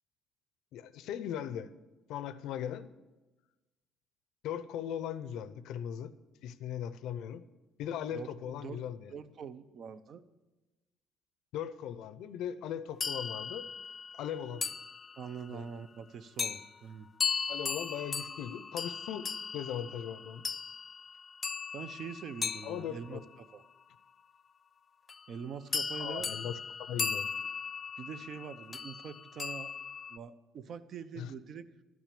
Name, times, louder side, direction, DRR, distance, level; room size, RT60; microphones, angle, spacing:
voice 1, 0.7-1.7 2.1-2.9 4.4-6.1 6.4-7.4 7.8-9.1 11.5-13.7 14.1-14.7 15.5-15.6 17.5-19.3 19.5-20.4 22.6-23.2 26.0-27.3 31.2-31.3, left 9 dB, 75° left, 14 dB, 0.6 m, -39 dB
voice 2, 8.1-8.8 9.1-10.2 15.2-17.1 21.7-23.6 25.3-26.3 28.0-29.7 30.1-31.7, right 6 dB, 45° right, 13 dB, 0.6 m, -44 dB
sound 1, 13.0-15.5 16.4-16.7 17.2-23.6 25.1-25.4 25.7-30.2, left 5 dB, 25° left, 0.3 m, -37 dB
12.5 x 6.1 x 8.4 m, 1.1 s
cardioid pair, 145°, 0 cm